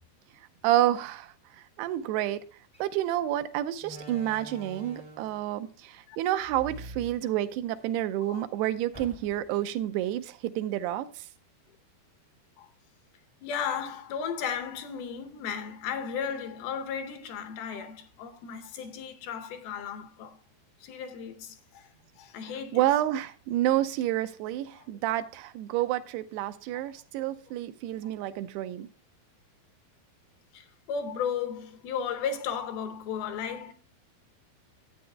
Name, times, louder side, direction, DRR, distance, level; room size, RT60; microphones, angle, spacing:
voice 1, 0.6-1.3 1.8-2.4 2.8-11.3 22.7-28.9, right 13 dB, 85° right, 2.6 m, -29 dB
Slam, 2.7-2.9 3.8-5.4 6.4-7.8 8.2-8.3 8.9-9.5, right 1 dB, 30° right, 0.4 m, -45 dB
voice 2, 13.4-20.4 20.8-21.9 22.2-22.9 24.8-24.9 30.5-33.7, left 7 dB, 75° left, 2.6 m, -35 dB
13.5 x 8.6 x 2.2 m
omnidirectional pair, 4.7 m